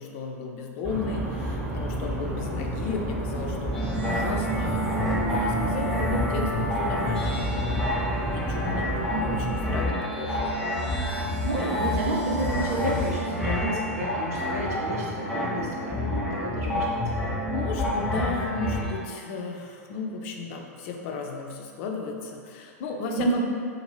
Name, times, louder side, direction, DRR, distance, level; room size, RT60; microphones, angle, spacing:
voice 1, 0.0-7.4 8.3-10.6 17.5-23.4, left 3 dB, 50° left, 1 dB, 0.4 m, -34 dB
sound 1, 0.8-9.9, right 1 dB, 20° right, 0.9 m, -31 dB
sound 2, 3.7-18.9, left 1 dB, 5° left, 0.6 m, -28 dB
voice 2, 9.1-9.4 11.4-16.8 23.2-23.4, right 2 dB, 65° right, -3 dB, 0.7 m, -30 dB
2.6 x 2.5 x 3.1 m, 2.2 s
figure-of-eight pair, 95°, 8 cm